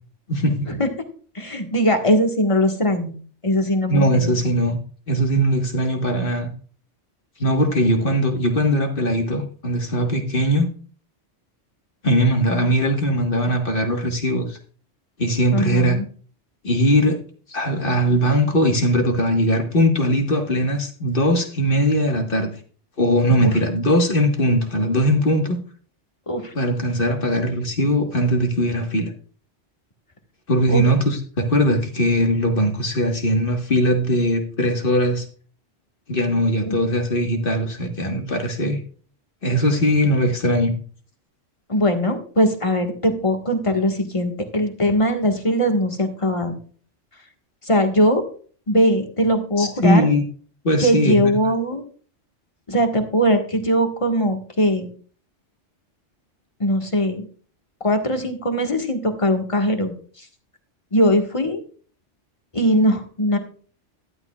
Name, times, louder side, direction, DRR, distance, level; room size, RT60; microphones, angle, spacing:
voice 1, 0.3-0.7 3.9-4.8 5.1-6.5 7.4-10.7 12.0-14.6 15.2-16.0 16.6-17.2 17.5-22.5 23.0-25.6 26.6-29.1 30.5-35.3 36.1-38.8 39.4-40.7 49.6-50.2 50.6-51.4, equal, 50° left, 3 dB, 1.7 m, -20 dB
voice 2, 1.3-3.1 3.4-4.3 15.5-16.1 26.3-26.5 30.7-30.8 36.6-36.7 41.7-46.6 47.6-48.2 48.7-50.1 50.8-51.8 52.7-54.9 56.6-57.3 57.8-60.3 60.9-61.6 62.5-63.4, equal, 25° left, 4 dB, 1.6 m, -20 dB
12.5 x 11.0 x 2.4 m, 0.43 s
omnidirectional pair, 1.2 m